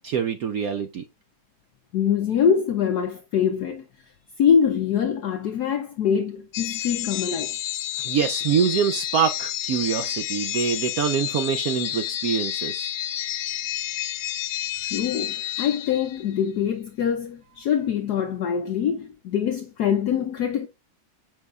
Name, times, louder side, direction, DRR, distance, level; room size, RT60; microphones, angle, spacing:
voice 1, 0.0-1.0 8.0-12.9, right 7 dB, 75° right, 0.8 m, -25 dB
voice 2, 1.9-3.8 4.4-7.6 14.8-20.7, left 8 dB, 65° left, 1.1 m, -24 dB
sound 1, 6.5-16.4, left 12 dB, 90° left, 1.4 m, -30 dB
7.6 x 5.5 x 2.3 m
omnidirectional pair, 2.1 m